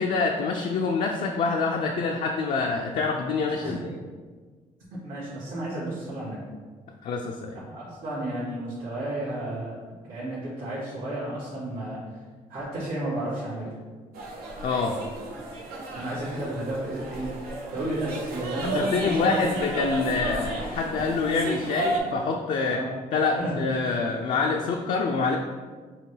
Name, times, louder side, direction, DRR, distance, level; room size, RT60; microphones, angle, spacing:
voice 1, 0.0-4.0 7.0-7.6 14.6-15.0 18.6-22.8 23.1-25.4, left 4 dB, 60° left, 2 dB, 0.4 m, -26 dB
voice 2, 3.5-3.8 4.9-6.4 7.7-9.8 10.1-12.0 12.5-13.7 15.9-17.3 17.7-19.4 22.7-22.9 23.4-23.5, right 1 dB, 70° right, -8 dB, 1.3 m, -32 dB
sound 1, 14.1-22.0, right 2 dB, 85° right, 0.7 m, -33 dB
5.3 x 2.3 x 3.3 m, 1.5 s
cardioid pair, 80°, 15 cm